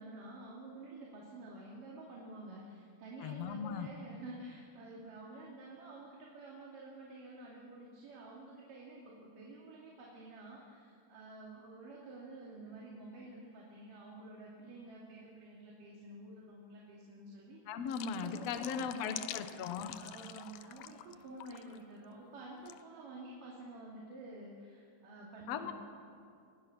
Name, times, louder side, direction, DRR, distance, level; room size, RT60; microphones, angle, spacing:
voice 1, 0.0-17.6 18.1-19.6 19.9-25.7, right 2 dB, 80° right, -3 dB, 4.4 m, -50 dB
voice 2, 3.2-3.9 17.7-19.9 25.5-25.7, left 7 dB, 60° left, 7 dB, 2.2 m, -38 dB
sound 1, 17.9-21.1 21.4-21.8 22.7-22.8, left 14 dB, 85° left, 2.3 m, -47 dB
26.5 x 21.5 x 6.2 m, 2.4 s
omnidirectional pair, 3.8 m